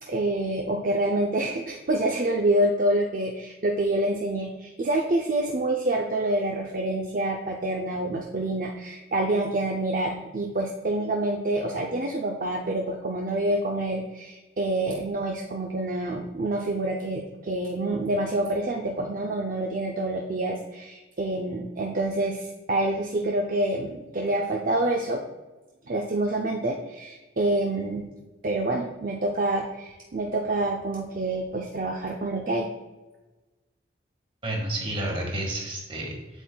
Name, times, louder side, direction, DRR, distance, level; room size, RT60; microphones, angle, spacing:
voice 1, 0.0-25.2 25.9-28.1 28.4-32.7, right 1 dB, 45° right, 1 dB, 0.5 m, -27 dB
voice 2, 34.4-36.4, right 1 dB, 30° right, -1 dB, 1.6 m, -31 dB
8.0 x 7.5 x 2.3 m, 1.1 s
head